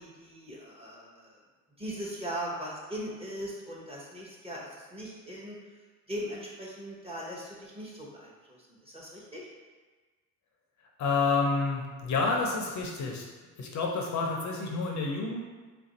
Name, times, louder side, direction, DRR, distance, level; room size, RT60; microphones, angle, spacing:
voice 1, 0.0-1.4 1.8-5.6 6.1-9.5, equal, 15° right, -5 dB, 0.9 m, -39 dB
voice 2, 11.0-13.2 13.6-15.4, left 4 dB, 45° left, 0 dB, 0.6 m, -29 dB
3.4 x 2.6 x 4.1 m, 1.3 s
cardioid pair, 105°, 39 cm